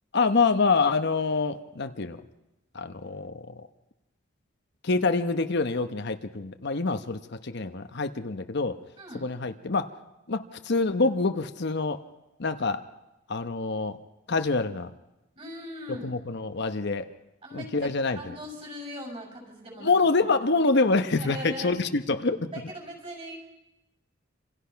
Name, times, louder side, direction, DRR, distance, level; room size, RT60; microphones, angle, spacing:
voice 1, 0.1-2.2 2.7-3.5 4.8-8.8 9.2-9.9 10.3-12.0 12.4-12.8 13.3-14.0 14.3-14.9 16.0-17.1 17.5-18.4 19.8-22.5, left 3 dB, 55° left, 8 dB, 1.0 m, -26 dB
voice 2, 9.0-9.3 15.4-16.1 17.4-19.9 21.2-21.9 22.5-23.3, equal, 30° right, 2 dB, 7.1 m, -40 dB
27.0 x 27.0 x 5.8 m, 0.98 s
head